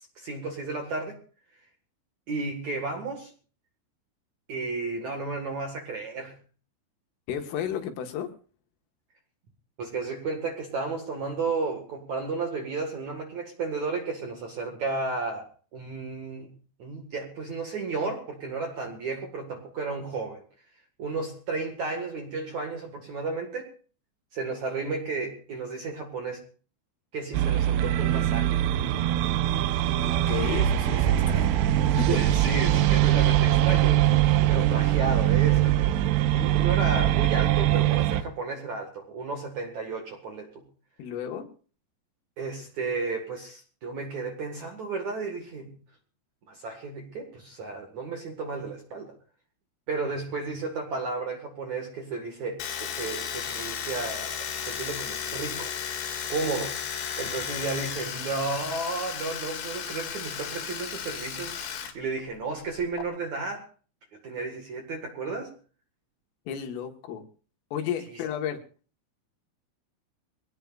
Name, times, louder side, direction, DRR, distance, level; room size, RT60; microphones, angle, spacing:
voice 1, 0.2-1.2 2.3-3.3 4.5-6.4 9.8-16.5 16.8-20.4 21.0-23.7 24.3-26.4 27.1-28.6 32.1-34.0 34.5-35.9 36.3-40.6 42.4-45.8 46.5-49.1 49.9-55.7 56.3-56.9 57.2-63.7 64.2-65.5, right 3 dB, 55° right, 3 dB, 2.2 m, -33 dB
voice 2, 7.3-8.3 30.0-32.1 41.0-41.5 66.5-67.2 67.7-68.6, left 9 dB, 80° left, 5 dB, 4.3 m, -33 dB
sound 1, 27.3-38.2, right 13 dB, 80° right, 2.5 m, -22 dB
Domestic sounds home sounds, 52.6-61.9 62.2-63.0, left 8 dB, 65° left, 4.1 m, -34 dB
23.5 x 17.5 x 2.5 m, 0.39 s
omnidirectional pair, 5.7 m